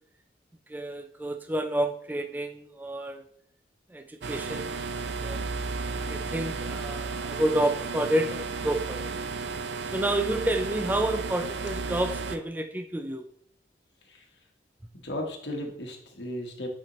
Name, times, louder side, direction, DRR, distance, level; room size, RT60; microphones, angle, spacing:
voice 1, 0.7-3.2 3.9-4.8 5.2-5.5 5.9-9.1 9.9-13.3, right 1 dB, 10° right, 6 dB, 0.3 m, -29 dB
sound 1, 4.2-12.4, right 4 dB, 70° right, 0.5 m, -33 dB
voice 2, 14.9-16.7, left 1 dB, 75° left, 1 dB, 1.3 m, -35 dB
8.7 x 4.4 x 3.0 m, 0.64 s
head